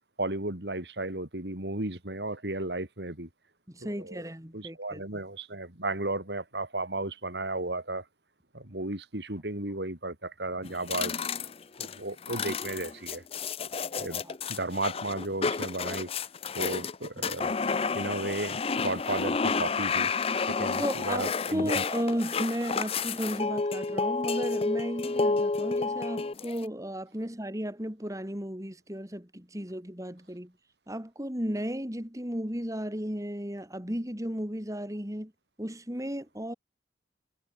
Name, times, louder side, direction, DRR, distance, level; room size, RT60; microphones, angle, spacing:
voice 1, 0.2-3.3 3.8-4.2 4.5-8.1 8.5-11.2 11.8-13.2 14.0-14.2 14.5-16.1 16.6-17.5 17.9-20.1 20.5-21.8, right 2 dB, 70° right, 3.5 m, -34 dB
voice 2, 3.7-5.0 14.2-14.4 20.8-30.5 30.9-35.3 35.6-36.5, equal, 20° right, 3.4 m, -34 dB
sound 1, 10.6-26.7, left 4 dB, 35° left, 0.6 m, -30 dB
head